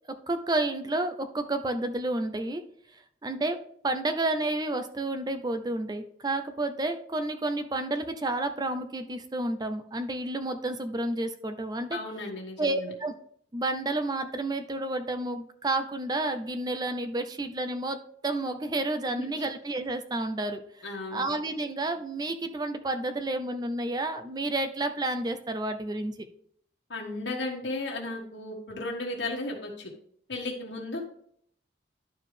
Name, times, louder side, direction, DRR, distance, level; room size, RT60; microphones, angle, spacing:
voice 1, 0.3-2.6 3.2-3.6 3.8-12.0 12.6-13.1 13.5-20.6 21.1-26.3, right 2 dB, 20° right, 8 dB, 0.5 m, -30 dB
voice 2, 11.9-12.9 19.1-19.5 20.8-21.3 26.9-29.9 30.3-31.0, left 2 dB, 80° left, -1 dB, 1.4 m, -35 dB
11.0 x 4.7 x 3.3 m, 0.64 s
head